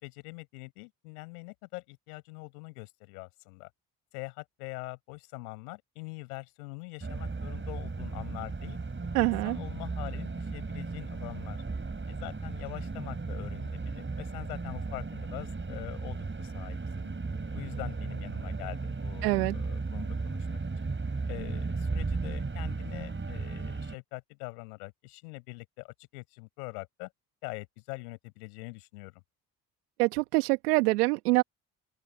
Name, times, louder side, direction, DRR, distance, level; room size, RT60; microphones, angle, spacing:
voice 1, 0.0-3.7 4.1-8.8 9.2-11.6 12.1-17.1 17.5-20.9 21.3-27.1 27.4-29.2, left 27 dB, 85° left, 7.3 m, -43 dB
sound 1, 7.0-24.0, right 3 dB, 25° right, 5.4 m, -35 dB
voice 2, 9.1-9.6 19.2-19.6 30.0-31.4, right 22 dB, 85° right, 1.5 m, -25 dB
open air
hypercardioid pair, 50°, 44 cm